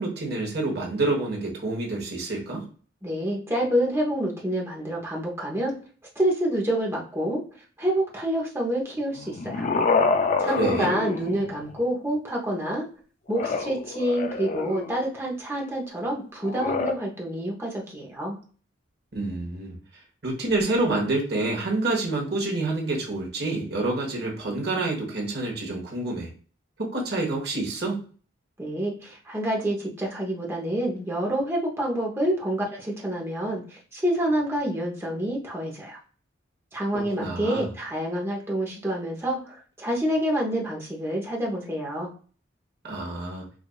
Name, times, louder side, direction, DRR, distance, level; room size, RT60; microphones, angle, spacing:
voice 1, 0.0-2.6 10.4-10.9 19.1-26.3 26.8-28.0 36.9-37.7 42.8-43.5, right 2 dB, 55° right, -1 dB, 1.2 m, -28 dB
voice 2, 3.0-5.7 6.2-7.4 7.8-9.7 10.4-12.9 13.3-18.4 28.6-36.0 36.7-42.1, right 1 dB, 15° right, -2 dB, 0.8 m, -27 dB
sound 1, 9.2-11.8 13.3-15.0 16.4-16.9, left 4 dB, 40° left, 0.3 m, -27 dB
4.8 x 2.5 x 2.3 m, 0.41 s
head